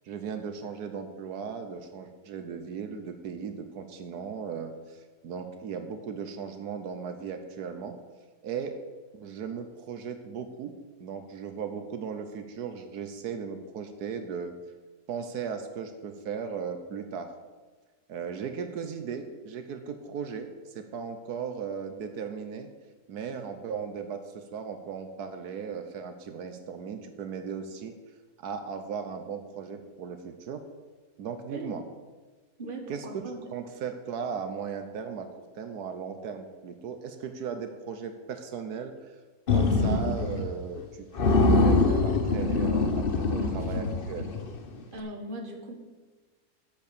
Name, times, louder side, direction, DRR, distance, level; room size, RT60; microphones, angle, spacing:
voice 1, 0.0-8.0 8.4-8.8 9.1-10.7 11.0-14.5 15.1-17.3 18.1-22.7 23.1-27.9 28.4-30.6 31.2-31.8 32.9-33.2 33.5-35.3 35.6-38.9 39.5-44.3, right 6 dB, 80° right, 7 dB, 1.4 m, -37 dB
voice 2, 32.6-33.4 43.3-43.5 44.9-45.7, right 2 dB, 35° right, 2 dB, 1.7 m, -38 dB
sound 1, 39.5-40.5 40.8-40.9 41.2-44.6, left 3 dB, 40° left, 1.0 m, -24 dB
10.5 x 8.2 x 6.8 m, 1.3 s
omnidirectional pair, 1.7 m